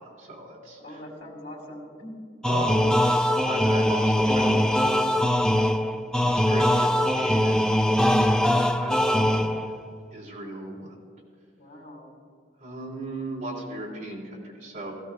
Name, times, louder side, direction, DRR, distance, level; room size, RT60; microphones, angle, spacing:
voice 1, 0.0-1.0 2.4-5.3 6.2-8.5 8.8-9.5 10.1-10.9 12.6-14.9, right 1 dB, 40° right, -4 dB, 2.9 m, -37 dB
voice 2, 0.8-2.2 11.5-12.2, left 1 dB, 80° left, -1 dB, 2.8 m, -42 dB
sound 1, 2.4-9.8, left 1 dB, 5° left, 0.3 m, -22 dB
16.5 x 15.0 x 2.4 m, 2.2 s
head